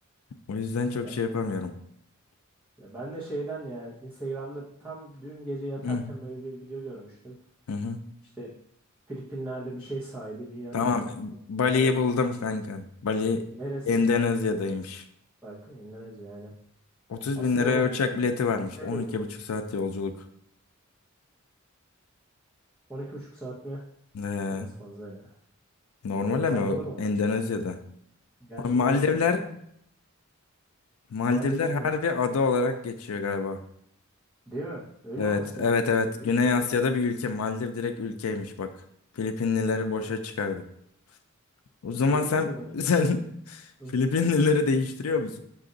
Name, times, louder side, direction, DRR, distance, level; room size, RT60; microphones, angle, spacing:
voice 1, 0.5-1.8 5.8-6.0 7.7-8.0 10.7-13.5 13.9-15.0 17.1-20.2 24.1-24.7 26.0-27.8 28.6-29.5 31.1-33.6 35.2-38.7 39.2-40.6 41.8-45.4, left 4 dB, 85° left, 6 dB, 0.4 m, -26 dB
voice 2, 2.8-7.4 8.4-8.5 9.1-10.9 11.7-12.0 13.5-14.0 15.4-16.5 17.3-17.8 18.8-19.2 22.9-23.8 24.5-25.3 26.5-27.0 28.4-29.2 31.3-31.9 34.5-36.7 39.6-40.1 42.1-42.7 43.8-43.9, right 1 dB, 10° right, -9 dB, 0.9 m, -38 dB
5.5 x 2.5 x 3.8 m, 0.71 s
head